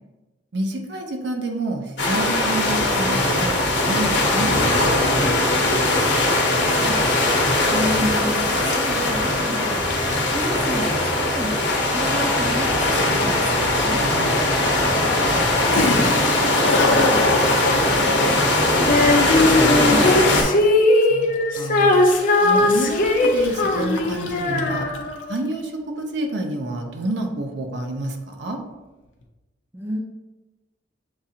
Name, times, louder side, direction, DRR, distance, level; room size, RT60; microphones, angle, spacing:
voice 1, 0.5-5.3 13.9-14.6 21.1-22.0 22.4-24.9 25.3-28.6, right 1 dB, 65° right, 3 dB, 0.6 m, -29 dB
sound 1, 2.0-20.4, left 2 dB, 65° left, 0.9 m, -20 dB
voice 2, 6.6-7.0 7.6-9.9 10.3-14.0 14.8-17.5 17.8-20.2 29.7-30.0, equal, 10° right, 1 dB, 0.4 m, -31 dB
Toilet flush, 13.7-13.8 15.4-15.5 15.7-25.1, left 2 dB, 90° left, 0.6 m, -26 dB
Female singing, 18.9-25.4, left 2 dB, 45° left, 0.5 m, -19 dB
7.1 x 2.5 x 2.8 m, 1.1 s
head